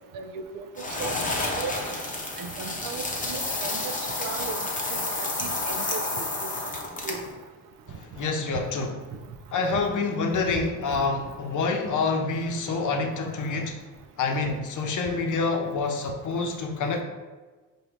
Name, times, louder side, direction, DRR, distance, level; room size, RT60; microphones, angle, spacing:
voice 1, 0.1-1.1 1.6-1.7 2.4-3.9 4.2-4.6 4.9-5.0 5.4-6.2 7.0-7.2, right 6 dB, 60° right, 7 dB, 0.5 m, -36 dB
sound 1, 0.8-7.3, left 2 dB, 20° left, 0.9 m, -30 dB
voice 2, 7.9-9.0 9.5-13.7 14.2-17.0, left 4 dB, 55° left, 3 dB, 0.8 m, -27 dB
4.7 x 2.7 x 3.1 m, 1.3 s
supercardioid pair, 75°, 38 cm